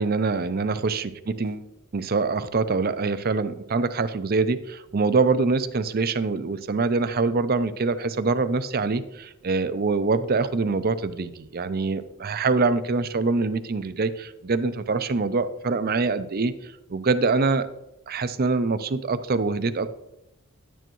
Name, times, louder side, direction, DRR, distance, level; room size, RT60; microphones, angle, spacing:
voice 1, 0.0-1.7 1.9-17.7 18.1-19.9, right 4 dB, 45° right, 12 dB, 0.5 m, -24 dB
11.0 x 9.1 x 3.1 m, 0.90 s
head